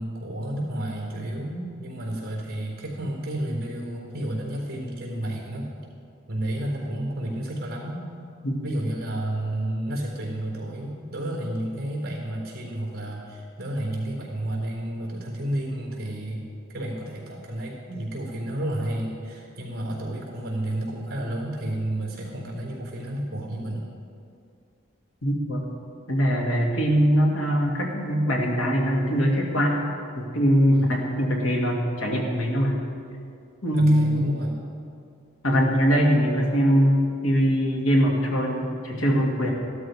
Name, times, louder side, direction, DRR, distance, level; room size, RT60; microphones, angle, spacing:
voice 1, 0.0-5.7 6.3-8.0 8.6-23.8 30.7-30.9 33.7-34.6, right 1 dB, 45° right, -1 dB, 3.7 m, -31 dB
voice 2, 25.2-25.7 26.1-29.8 30.1-32.8 33.6-34.3 35.4-39.5, equal, 70° left, -1 dB, 2.2 m, -22 dB
15.0 x 12.5 x 4.8 m, 2.4 s
head